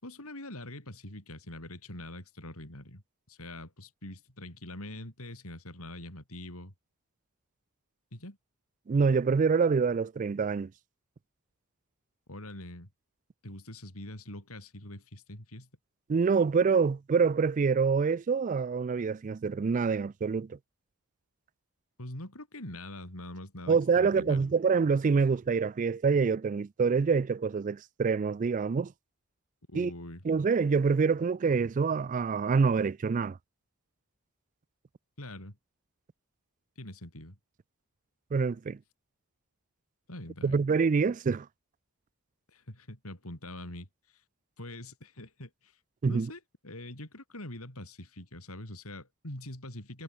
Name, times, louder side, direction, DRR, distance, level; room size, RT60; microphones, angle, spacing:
voice 1, 0.0-6.7 8.1-8.4 12.3-12.9 13.4-15.7 22.0-24.5 29.7-30.2 35.2-35.6 36.8-37.4 40.1-40.6 42.5-43.9 44.6-45.7 46.1-50.0, left 1 dB, 75° left, 6.7 m, -44 dB
voice 2, 8.9-10.7 16.1-20.6 23.7-28.9 29.7-29.9 30.2-33.4 38.3-38.8 40.4-41.5 46.0-46.3, right 5 dB, 35° right, 0.3 m, -26 dB
head